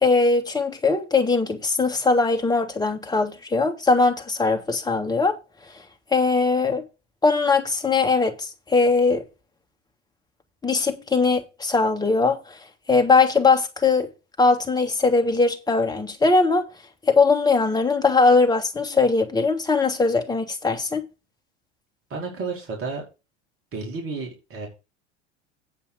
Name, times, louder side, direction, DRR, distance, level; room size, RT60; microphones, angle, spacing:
voice 1, 0.0-5.4 6.1-6.8 7.2-9.3 10.6-12.6 12.9-14.1 14.4-16.7 17.1-21.0, left 4 dB, 10° left, 2.0 m, -20 dB
voice 2, 22.1-23.0 23.7-24.7, right 4 dB, 40° right, 4.9 m, -31 dB
9.1 x 5.5 x 6.5 m
hypercardioid pair, 85°, 35 cm